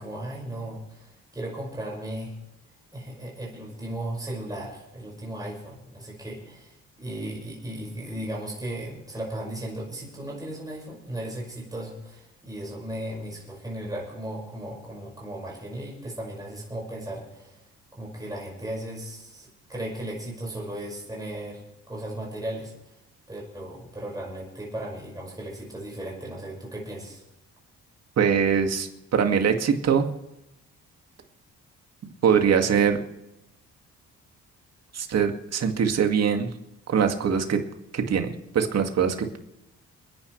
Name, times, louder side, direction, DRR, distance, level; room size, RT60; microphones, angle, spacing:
voice 1, 0.0-2.3 2.9-17.6 17.9-22.7 23.3-27.2, right 1 dB, 10° right, -3 dB, 5.6 m, -36 dB
voice 2, 28.2-30.1 32.2-33.0 34.9-36.5 36.9-37.6 37.9-39.4, right 7 dB, 55° right, 5 dB, 2.2 m, -22 dB
29.5 x 10.5 x 3.3 m, 0.89 s
cardioid pair, 90°, 30 cm